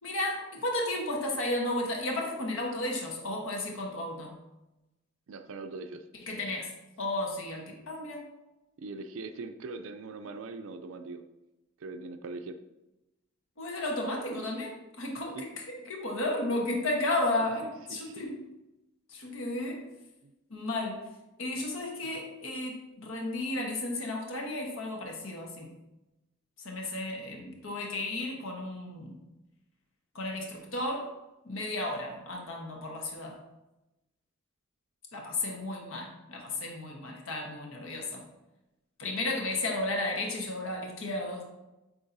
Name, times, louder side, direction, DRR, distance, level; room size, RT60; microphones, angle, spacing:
voice 1, 0.0-4.4 6.2-6.7 7.0-8.3 13.6-18.4 19.1-19.9 20.5-21.1 21.4-25.7 26.6-29.2 30.1-31.1 31.4-33.4 35.1-38.2 39.0-41.4, left 2 dB, 75° left, 0 dB, 1.1 m, -33 dB
voice 2, 5.3-6.0 8.8-11.2 11.8-12.6 15.3-15.4 17.9-18.2 20.2-20.3, right 3 dB, 70° right, 8 dB, 0.4 m, -41 dB
8.5 x 4.3 x 2.7 m, 0.98 s
head